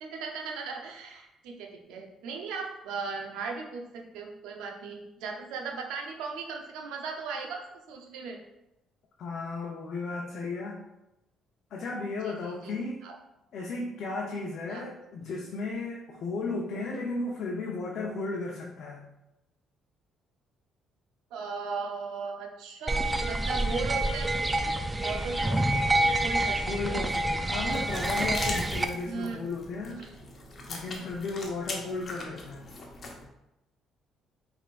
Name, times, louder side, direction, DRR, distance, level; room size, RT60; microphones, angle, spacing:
voice 1, 0.0-8.4 12.2-12.7 13.0-13.1 14.7-14.9 21.3-24.7 25.0-25.6 26.2-27.0 29.0-29.4 30.0-30.1, right 4 dB, 80° right, 1 dB, 0.7 m, -37 dB
voice 2, 9.2-10.8 11.7-13.1 13.5-19.0 26.7-30.0 30.7-32.7, left 3 dB, 65° left, -2 dB, 0.7 m, -34 dB
sound 1, 22.9-28.9, right 1 dB, 20° right, 0.4 m, -27 dB
sound 2, 27.6-33.2, left 2 dB, 45° left, 1.0 m, -40 dB
5.2 x 3.6 x 2.5 m, 0.93 s
supercardioid pair, 70°, 0 cm